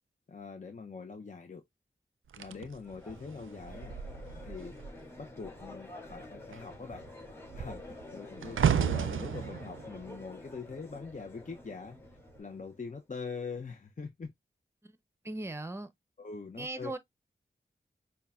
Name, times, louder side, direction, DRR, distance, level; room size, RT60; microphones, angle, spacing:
voice 1, 0.3-1.6 2.4-4.0 4.3-4.8 5.2-7.0 7.5-12.0 12.4-14.3 16.2-16.9, left 4 dB, 40° left, 0.6 m, -43 dB
sound 1, 2.3-5.1 5.4-5.7 6.0-11.4 12.1-12.4, right 8 dB, 85° right, 0.4 m, -34 dB
Crowd, 2.8-13.0, left 2 dB, 10° left, 2.5 m, -49 dB
voice 2, 15.2-15.9 16.6-17.0, right 2 dB, 15° right, 0.7 m, -38 dB
5.4 x 2.2 x 2.4 m
cardioid pair, 40°, 20 cm